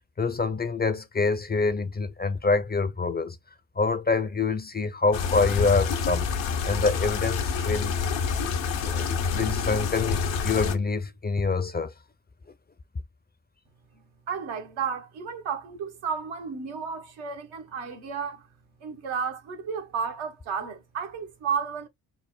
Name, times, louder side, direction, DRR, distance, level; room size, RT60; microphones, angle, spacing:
voice 1, 0.2-3.4 3.8-6.3 6.6-7.9 8.9-11.9, left 4 dB, 20° left, 0.5 m, -26 dB
sound 1, 5.1-10.8, left 6 dB, 75° left, 0.9 m, -27 dB
voice 2, 14.3-18.5 18.8-21.9, right 6 dB, 75° right, 1.1 m, -32 dB
3.3 x 2.0 x 4.2 m
hypercardioid pair, 40°, 46 cm